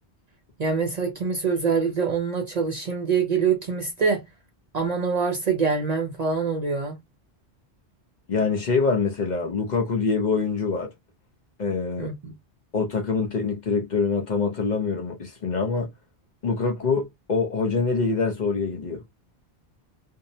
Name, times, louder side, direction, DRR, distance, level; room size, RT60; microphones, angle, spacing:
voice 1, 0.6-4.2 4.7-7.0 12.0-12.3, right 5 dB, 50° right, 0.5 m, -25 dB
voice 2, 8.3-10.9 11.6-12.1 12.7-15.9 16.4-19.0, left 4 dB, 50° left, 0.6 m, -25 dB
2.6 x 2.0 x 2.6 m
omnidirectional pair, 1.1 m